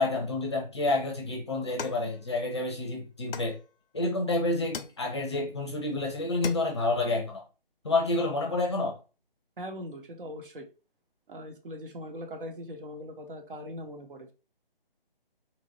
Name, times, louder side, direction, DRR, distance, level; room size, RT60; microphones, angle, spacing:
voice 1, 0.0-3.6 3.9-7.4 7.8-9.0, left 2 dB, 30° left, 0.6 m, -29 dB
sound 1, 1.8-2.7 3.3-4.1 4.7-5.4 5.9-6.0 6.2-7.0, left 6 dB, 70° left, 0.5 m, -41 dB
voice 2, 9.6-10.6 11.3-14.3, equal, 60° right, 0.9 m, -40 dB
3.0 x 2.4 x 2.8 m
figure-of-eight pair, 160°, 30 cm